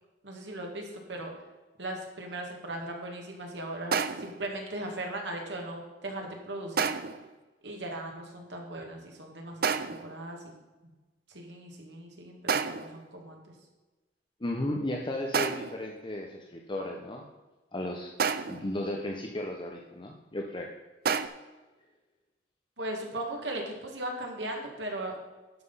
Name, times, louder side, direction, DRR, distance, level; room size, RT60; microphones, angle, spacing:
voice 1, 0.2-1.3 1.8-6.9 7.6-10.5 11.3-13.4 22.8-25.2, right 1 dB, 90° right, 1 dB, 2.2 m, -38 dB
sound 1, 3.9-4.4 6.8-7.3 9.6-10.1 12.5-13.0 15.3-15.8 18.2-18.7 21.0-21.3, right 6 dB, 60° right, 0.5 m, -29 dB
voice 2, 14.4-17.2 17.7-18.1 18.5-20.7, left 1 dB, 30° left, 1 dB, 0.8 m, -34 dB
11.5 x 6.0 x 5.6 m, 1.2 s
head